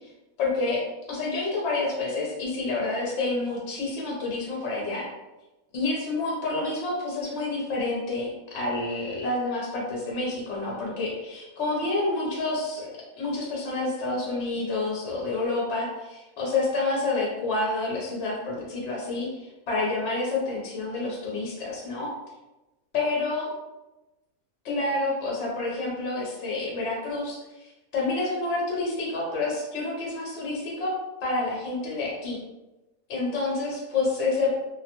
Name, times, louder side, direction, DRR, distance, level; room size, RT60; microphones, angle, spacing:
voice 1, 0.4-5.1 5.7-22.1 22.9-23.5 24.6-32.4 33.1-34.6, left 3 dB, 60° left, -3 dB, 0.9 m, -28 dB
2.5 x 2.1 x 2.9 m, 1.0 s
omnidirectional pair, 1.5 m